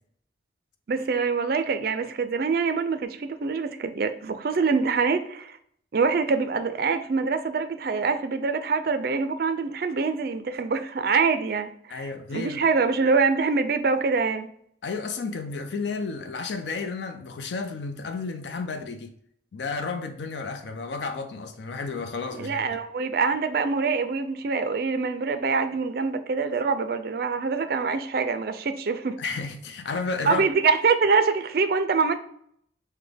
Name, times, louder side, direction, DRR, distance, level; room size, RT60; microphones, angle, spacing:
voice 1, 0.9-5.6 5.9-14.5 22.4-29.2 30.3-32.2, right 4 dB, 55° right, 0.4 m, -25 dB
voice 2, 11.9-12.6 14.8-19.1 19.5-22.8 29.2-30.4, left 4 dB, 75° left, 0.4 m, -32 dB
6.0 x 2.1 x 3.3 m
head